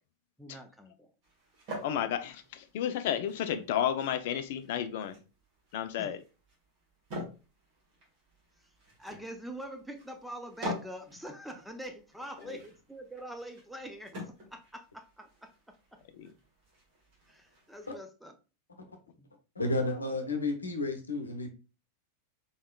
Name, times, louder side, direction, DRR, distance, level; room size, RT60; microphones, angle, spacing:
voice 1, 0.4-1.1 6.0-6.1 9.0-16.0 17.3-18.3 19.2-19.3, right 1 dB, ahead, 5 dB, 0.5 m, -44 dB
sound 1, 1.2-18.0, equal, 45° right, 1.8 m, -47 dB
voice 2, 1.8-5.2 5.7-6.2 12.5-12.6 16.1-16.3, left 10 dB, 50° left, 10 dB, 0.4 m, -32 dB
voice 3, 19.6-21.5, left 2 dB, 75° left, 5 dB, 0.7 m, -31 dB
3.9 x 3.6 x 2.2 m, 0.32 s
figure-of-eight pair, 90°, 0 cm